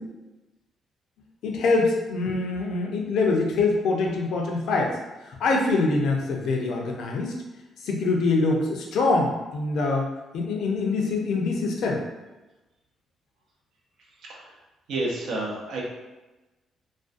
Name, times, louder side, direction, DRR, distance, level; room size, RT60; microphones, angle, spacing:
voice 1, 1.4-5.0 5.2-7.3 7.8-12.0, left 3 dB, 75° left, 0 dB, 0.5 m, -24 dB
voice 2, 14.9-15.8, right 2 dB, 75° right, -2 dB, 0.6 m, -30 dB
2.4 x 2.2 x 2.5 m, 1.1 s
cardioid pair, 90°, 0 cm